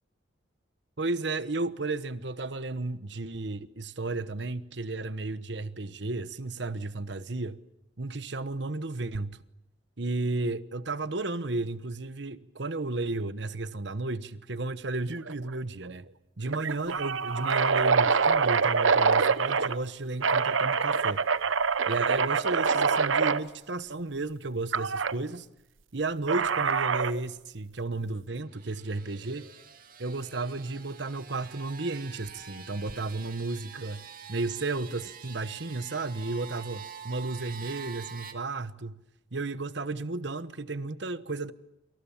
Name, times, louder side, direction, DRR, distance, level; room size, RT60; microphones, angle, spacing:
voice 1, 1.0-7.6 8.0-9.4 10.0-16.0 16.4-21.2 21.9-25.5 25.9-29.5 30.0-34.0 34.3-39.0 39.3-41.5, right 2 dB, 60° right, 1.1 m, -33 dB
sound 1, 15.3-15.5 15.8-15.9 16.5-19.8 20.2-23.4 24.7-25.1 26.3-27.2, right 5 dB, 85° right, 0.9 m, -25 dB
sound 2, 28.4-38.3, right 6 dB, 45° right, 2.4 m, -46 dB
28.5 x 26.5 x 7.3 m
head